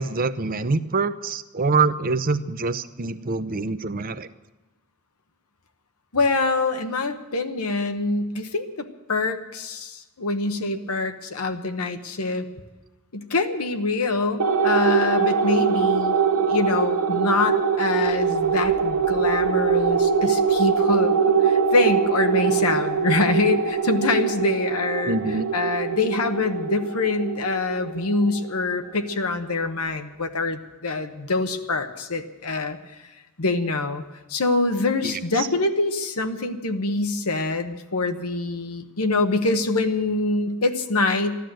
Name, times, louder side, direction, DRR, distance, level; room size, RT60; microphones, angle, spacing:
voice 1, 0.0-4.3 25.1-25.5 35.0-35.2, right 4 dB, 40° right, 12 dB, 0.7 m, -25 dB
voice 2, 6.1-12.5 13.1-32.8 33.4-34.0 34.3-41.4, left 3 dB, 80° left, 7 dB, 1.1 m, -25 dB
sound 1, 14.4-29.2, right 6 dB, 85° right, 0.9 m, -23 dB
14.5 x 12.0 x 7.7 m, 1.1 s
head